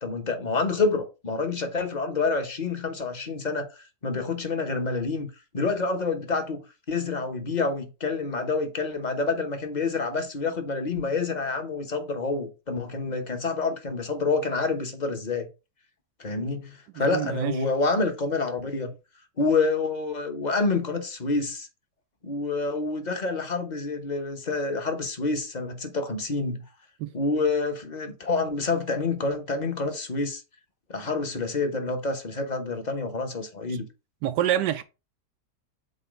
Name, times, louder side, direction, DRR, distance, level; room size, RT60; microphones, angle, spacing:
voice 1, 0.0-5.3 5.5-6.6 6.9-15.5 16.2-18.9 19.4-21.7 22.2-26.6 27.1-30.4 30.9-33.9, left 3 dB, 30° left, 0.9 m, -28 dB
voice 2, 17.0-17.5 27.0-27.1 34.2-34.8, right 12 dB, 80° right, 1.2 m, -26 dB
8.0 x 2.9 x 5.1 m
omnidirectional pair, 1.8 m